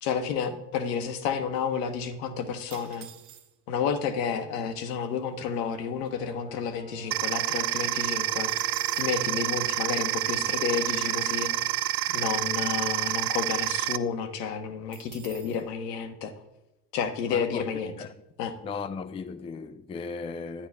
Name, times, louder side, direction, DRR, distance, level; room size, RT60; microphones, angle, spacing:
voice 1, 0.0-3.1 3.7-8.5 9.0-11.5 12.1-16.3 16.9-17.9 18.4-18.5, left 6 dB, 80° left, 1.1 m, -31 dB
sound 1, 2.7-3.8 4.6-4.7 4.9-5.2 5.7-7.1 7.5-7.6 7.8-9.2 14.9-15.6, right 10 dB, 80° right, 0.8 m, -49 dB
Wind instrument woodwind instrument, 6.1-11.9, right 1 dB, 15° right, 0.8 m, -48 dB
sound 2, 7.1-14.0, right 15 dB, 50° right, 0.5 m, -28 dB
voice 2, 17.3-17.7 18.0-18.1 18.6-20.7, left 5 dB, 15° left, 0.3 m, -36 dB
10.0 x 9.3 x 3.5 m
hypercardioid pair, 65°, 47 cm